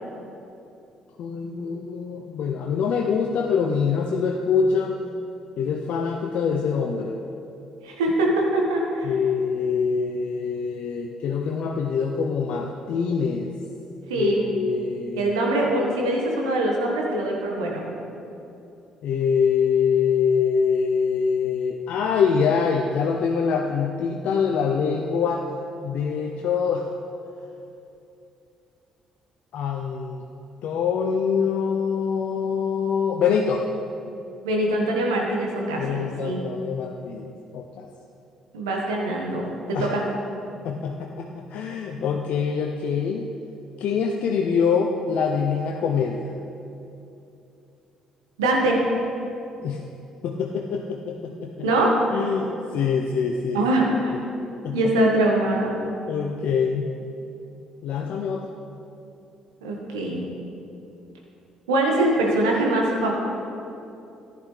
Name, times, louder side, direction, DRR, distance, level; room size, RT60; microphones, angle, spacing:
voice 1, 1.2-5.0 5.6-7.2 9.0-13.6 14.1-15.3 19.0-25.5 25.8-26.9 29.5-30.3 30.6-33.6 35.8-37.9 39.7-40.0 40.6-43.3 43.8-46.3 49.6-49.8 50.2-51.7 52.1-53.6 54.1-54.2 54.6-54.9 56.1-56.9 57.8-58.5, left 6 dB, 60° left, 1 dB, 0.7 m, -24 dB
voice 2, 7.8-9.1 14.1-14.4 15.2-17.8 34.4-36.4 38.5-40.0 48.4-48.8 51.6-51.9 53.5-54.1 54.7-55.8 59.6-60.2 61.7-63.1, right 1 dB, 85° right, -1 dB, 1.5 m, -23 dB
14.5 x 10.5 x 3.4 m, 2.8 s
hypercardioid pair, 50°, 2 cm